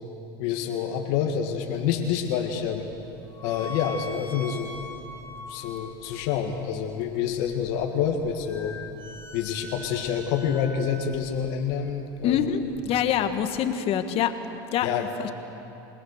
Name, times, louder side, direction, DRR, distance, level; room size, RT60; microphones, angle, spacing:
voice 1, 0.4-2.9 3.4-4.8 5.5-8.8 9.3-12.5 14.8-15.1, left 8 dB, 70° left, 2 dB, 1.9 m, -27 dB
sound 1, 1.5-13.7, left 2 dB, 20° left, 3.8 m, -44 dB
voice 2, 12.2-12.6 12.8-14.3 14.7-14.9 15.2-15.3, left 9 dB, 55° left, 8 dB, 1.6 m, -24 dB
28.0 x 18.5 x 6.6 m, 2.9 s
supercardioid pair, 95°, 12 cm